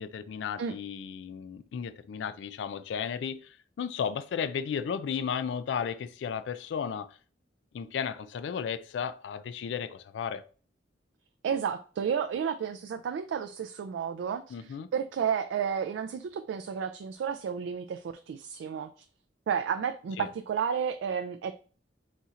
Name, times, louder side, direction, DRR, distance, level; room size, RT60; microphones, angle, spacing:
voice 1, 0.0-7.2 7.7-10.4 14.5-14.9 20.2-20.3, left 7 dB, 75° left, 0.3 m, -34 dB
voice 2, 11.4-18.9 19.5-21.5, right 7 dB, 85° right, 0.3 m, -32 dB
4.1 x 2.4 x 4.1 m
head